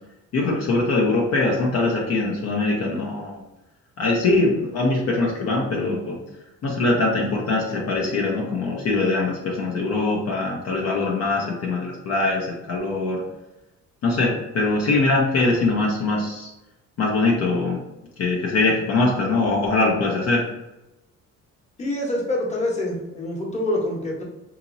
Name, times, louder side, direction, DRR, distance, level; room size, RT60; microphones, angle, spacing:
voice 1, 0.3-3.4 4.0-6.2 6.6-13.2 14.0-16.5 17.0-17.8 18.2-20.4, left 3 dB, 55° left, -2 dB, 0.6 m, -22 dB
voice 2, 21.8-24.2, left 1 dB, 25° left, -3 dB, 1.0 m, -26 dB
2.9 x 2.8 x 2.6 m, 0.98 s
cardioid pair, 90°, 30 cm